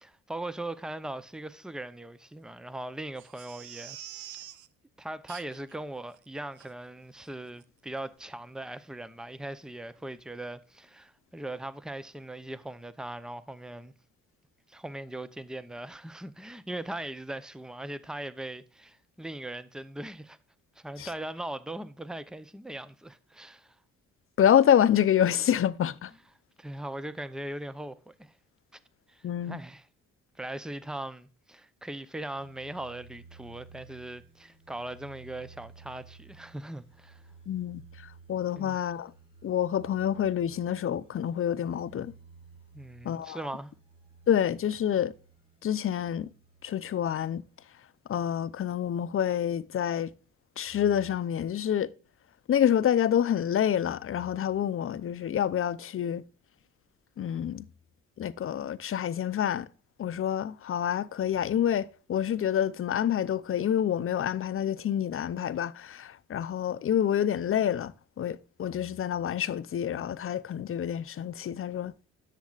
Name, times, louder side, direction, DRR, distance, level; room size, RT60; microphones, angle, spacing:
voice 1, 0.0-4.4 5.0-13.9 14.7-20.4 20.8-23.8 26.6-28.3 28.7-28.8 29.1-29.9 30.4-37.2 38.6-38.8 42.7-43.7, right 1 dB, ahead, 0.7 m, -40 dB
Crying sobbing, 3.2-4.7 5.3-5.8 6.1-6.2 6.6-6.7 7.2-7.3 7.6-7.7, right 12 dB, 75° right, 0.6 m, -46 dB
voice 2, 24.4-26.1 29.2-29.6 37.5-37.8 38.3-39.1 39.4-42.1 43.0-43.4 44.3-45.1 45.6-46.3 46.6-47.4 48.1-50.1 50.6-51.9 52.5-56.2 57.2-57.6 58.2-59.7 60.0-67.9 68.2-71.9, left 9 dB, 45° left, 0.6 m, -27 dB
sound 1, 32.4-47.6 48.2-49.2, right 4 dB, 20° right, 4.5 m, -55 dB
10.5 x 7.6 x 2.5 m
cardioid pair, 90°, 30 cm